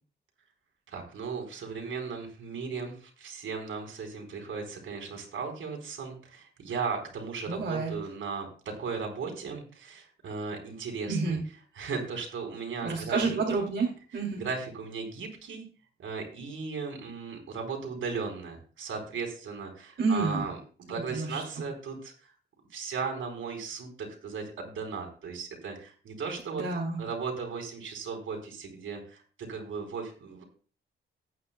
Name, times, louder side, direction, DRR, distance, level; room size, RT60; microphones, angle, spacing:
voice 1, 0.9-8.5 8.8-11.4 11.7-13.4 14.4-15.7 16.0-20.6 20.9-22.3 22.7-26.6 27.0-30.4, right 5 dB, 85° right, 2 dB, 4.4 m, -36 dB
voice 2, 7.5-7.9 11.1-11.4 12.8-14.4 20.0-20.4 20.9-21.4 26.5-27.0, right 4 dB, 70° right, -2 dB, 2.5 m, -29 dB
19.0 x 9.2 x 2.2 m, 0.39 s
wide cardioid pair, 130°, 20 cm